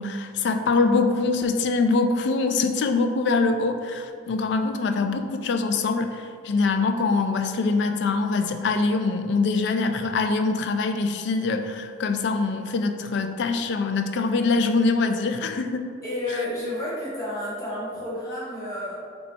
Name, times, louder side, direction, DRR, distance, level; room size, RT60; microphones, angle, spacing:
voice 1, 0.0-15.9, left 3 dB, 65° left, 7 dB, 0.3 m, -24 dB
voice 2, 16.0-18.9, left 1 dB, 20° left, -8 dB, 1.4 m, -30 dB
4.1 x 2.3 x 3.9 m, 2.1 s
head